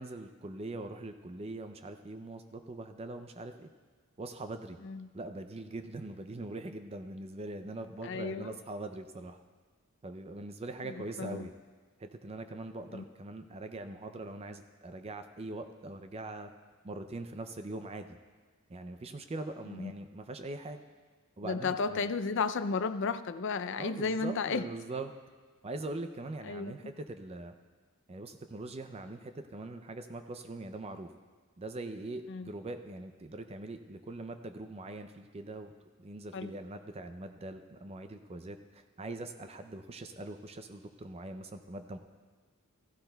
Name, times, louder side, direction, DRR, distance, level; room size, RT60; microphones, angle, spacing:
voice 1, 0.0-3.7 4.2-4.8 5.1-9.4 10.0-11.5 12.0-16.5 16.8-18.2 18.7-20.8 21.4-22.0 23.8-25.1 25.6-27.6 28.1-31.1 31.6-35.7 36.0-42.0, right 2 dB, 30° right, 8 dB, 0.4 m, -42 dB
voice 2, 8.0-8.5 10.8-10.9 11.2-11.5 12.9-13.0 19.7-19.9 21.4-24.7 26.4-26.9 32.3-32.5 36.3-36.5, left 4 dB, 60° left, 12 dB, 0.5 m, -33 dB
16.0 x 15.0 x 2.3 m, 1.4 s
head